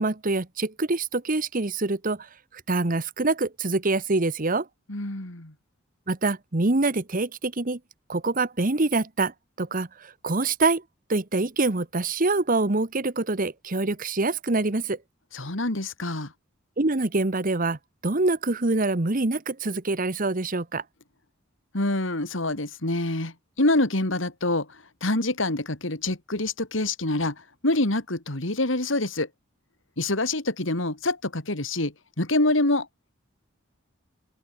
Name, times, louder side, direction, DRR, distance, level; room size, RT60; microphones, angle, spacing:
voice 1, 0.0-2.3 2.5-4.7 6.1-7.8 8.1-10.8 11.1-15.0 16.8-17.8 18.0-20.8, right 2 dB, 45° right, 1.3 m, -25 dB
voice 2, 4.9-5.5 15.3-16.3 21.7-29.3 30.0-32.9, left 2 dB, 70° left, 3.1 m, -26 dB
open air
head